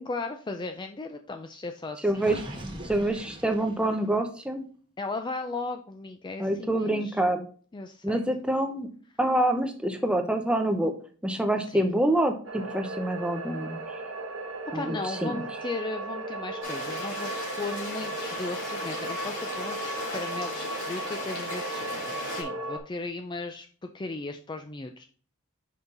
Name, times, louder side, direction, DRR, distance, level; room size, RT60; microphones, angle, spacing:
voice 1, 0.1-2.5 5.0-7.4 7.7-8.2 11.7-11.8 14.7-17.3 17.6-25.0, left 3 dB, 20° left, 6 dB, 0.4 m, -36 dB
voice 2, 2.0-2.4 2.8-4.7 6.4-7.4 8.0-8.9 9.2-10.9 11.2-13.8 14.7-15.4, right 1 dB, 5° right, 5 dB, 0.7 m, -26 dB
Gurgling, 2.1-4.2, right 1 dB, 20° right, 1.4 m, -41 dB
sound 1, 12.4-22.8, right 2 dB, 70° right, 1.3 m, -36 dB
sound 2, 16.6-22.4, left 2 dB, 70° left, 3.4 m, -37 dB
5.8 x 5.6 x 3.8 m, 0.43 s
head